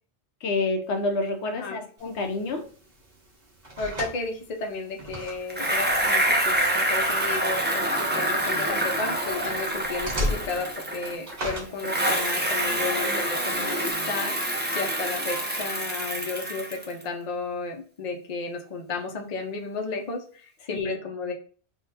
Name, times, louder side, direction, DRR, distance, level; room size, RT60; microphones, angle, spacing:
voice 1, 0.4-2.6 20.7-20.9, left 3 dB, 85° left, 5 dB, 1.0 m, -28 dB
voice 2, 1.5-1.8 3.8-21.3, left 3 dB, 45° left, 3 dB, 0.6 m, -33 dB
sound 1, 2.0-13.9, equal, 60° right, 1.5 m, -39 dB
Bicycle, 5.5-11.4 11.8-17.0, right 1 dB, 15° right, 0.5 m, -26 dB
3.6 x 2.3 x 4.0 m, 0.44 s
omnidirectional pair, 1.1 m